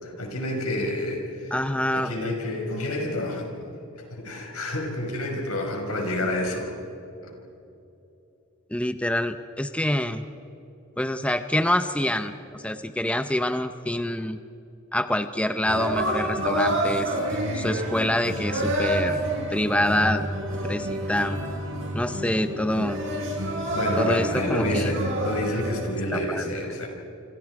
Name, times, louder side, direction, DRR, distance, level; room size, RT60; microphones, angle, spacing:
voice 1, 0.0-1.6 1.9-3.7 4.0-6.7 23.7-26.9, left 1 dB, 85° left, 2 dB, 5.8 m, -29 dB
voice 2, 1.5-2.1 8.7-10.3 11.0-14.4 14.9-17.1 17.5-19.2 19.5-20.3 20.6-21.4 21.9-23.0 24.0-24.9 26.1-26.5, left 1 dB, 5° left, 9 dB, 0.7 m, -26 dB
sound 1, 15.6-25.8, right 1 dB, 60° right, 6.7 m, -28 dB
28.5 x 26.0 x 4.8 m, 2.9 s
head